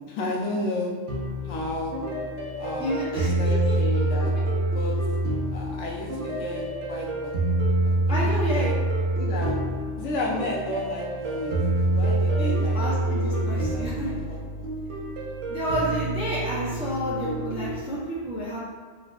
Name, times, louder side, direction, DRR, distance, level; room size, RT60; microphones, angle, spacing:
voice 1, 0.1-0.9 1.4-1.9 2.6-4.3 4.7-4.9 5.5-7.3 7.8-8.7 9.2-9.5 10.0-12.8 13.2-14.7, left 1 dB, 75° left, -2 dB, 0.9 m, -33 dB
sound 1, 1.1-17.8, right 1 dB, 70° right, 0.9 m, -27 dB
voice 2, 2.8-3.7 8.1-8.7 12.3-14.1 15.5-18.6, equal, 10° right, -8 dB, 0.3 m, -30 dB
3.9 x 2.2 x 2.4 m, 1.5 s
omnidirectional pair, 1.3 m